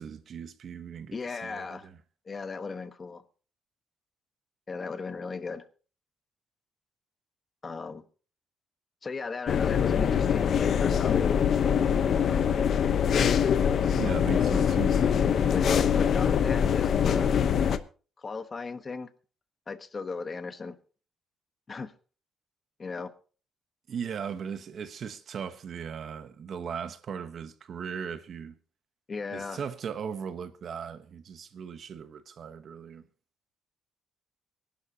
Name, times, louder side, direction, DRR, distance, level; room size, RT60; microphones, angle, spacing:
voice 1, 0.0-1.2 1.4-2.0 13.9-15.0 23.9-28.6 29.3-33.0, right 7 dB, 50° right, 1.1 m, -38 dB
voice 2, 1.1-1.9 2.3-3.2 4.7-5.6 7.6-8.0 9.0-11.4 12.3-13.1 15.5-17.3 18.2-19.1 19.7-20.8 21.7-21.9 22.8-23.1 29.1-29.6, left 4 dB, 25° left, 1.2 m, -37 dB
sound 1, 9.5-17.8, left 8 dB, 50° left, 0.9 m, -24 dB
23.5 x 11.5 x 2.9 m
cardioid pair, 140°, 0 cm